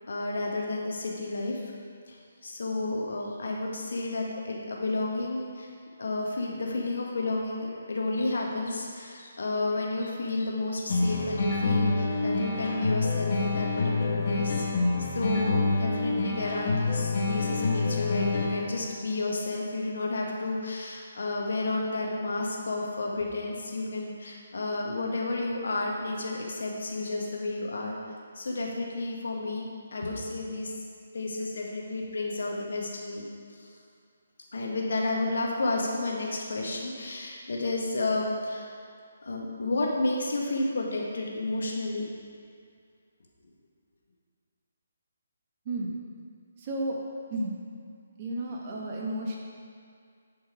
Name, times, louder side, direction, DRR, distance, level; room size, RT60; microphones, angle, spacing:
voice 1, 0.1-1.6 2.1-5.7 6.0-14.7 15.0-28.0 28.3-30.7 31.1-33.3 33.5-33.7 34.5-38.7 39.2-42.1, left 2 dB, 55° left, -1 dB, 1.4 m, -31 dB
sound 1, 10.9-18.9, left 3 dB, 40° left, 1.3 m, -27 dB
voice 2, 46.6-47.0 47.3-47.6 48.2-49.4, right 1 dB, 30° right, -2 dB, 1.3 m, -32 dB
10.5 x 5.2 x 4.8 m, 2.2 s
figure-of-eight pair, 140°, 0 cm